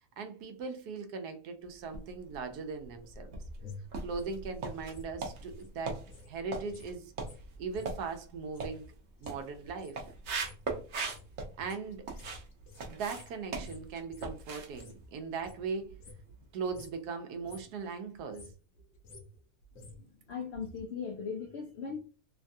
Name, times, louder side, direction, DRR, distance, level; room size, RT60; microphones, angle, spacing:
voice 1, 0.2-3.3 4.0-7.1 7.6-8.9 9.2-10.0 11.6-12.1 12.9-16.0 16.5-18.5, right 5 dB, 80° right, 7 dB, 1.2 m, -39 dB
sound 1, 1.8-2.5 3.0-12.5 12.7-16.4 16.9-17.0, right 3 dB, 60° right, 0.8 m, -40 dB
sound 2, 2.9-6.3 6.6-15.1 15.3-16.4 16.7-17.0 17.3-17.8 18.1-20.8 21.1-21.2, left 2 dB, 60° left, 1.0 m, -52 dB
voice 2, 19.8-22.0, left 6 dB, 80° left, 3 dB, 0.6 m, -39 dB
3.2 x 2.3 x 2.6 m, 0.35 s
omnidirectional pair, 1.7 m